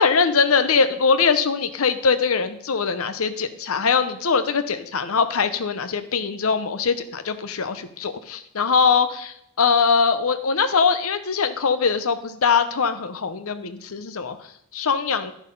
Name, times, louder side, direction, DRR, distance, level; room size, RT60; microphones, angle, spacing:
voice 1, 0.0-14.4 14.7-15.3, left 5 dB, 75° left, 11 dB, 0.8 m, -22 dB
11.5 x 6.2 x 5.4 m, 0.73 s
head